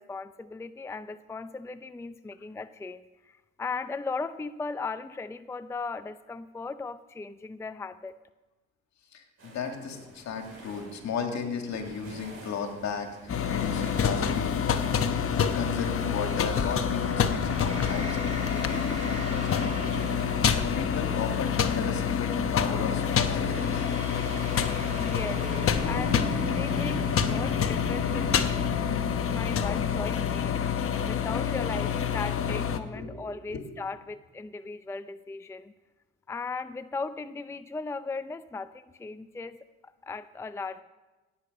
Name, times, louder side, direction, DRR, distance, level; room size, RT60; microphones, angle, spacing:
voice 1, 0.0-8.2 24.9-25.5 25.8-28.4 29.3-30.6 31.1-35.7 36.3-39.6 40.0-40.8, left 3 dB, 10° left, 12 dB, 0.4 m, -37 dB
voice 2, 9.1-13.1 13.5-14.5 15.5-20.1 20.6-23.8 32.4-32.5 32.9-33.6, left 6 dB, 65° left, 4 dB, 2.0 m, -35 dB
sound 1, 9.4-28.3, right 1 dB, 50° right, 5.6 m, -50 dB
sound 2, 13.3-32.8, left 7 dB, 45° left, 1.0 m, -27 dB
sound 3, 17.3-21.7 23.2-28.7, right 1 dB, 25° right, 3.1 m, -39 dB
16.5 x 8.6 x 5.3 m, 1.2 s
cardioid pair, 90°, 30 cm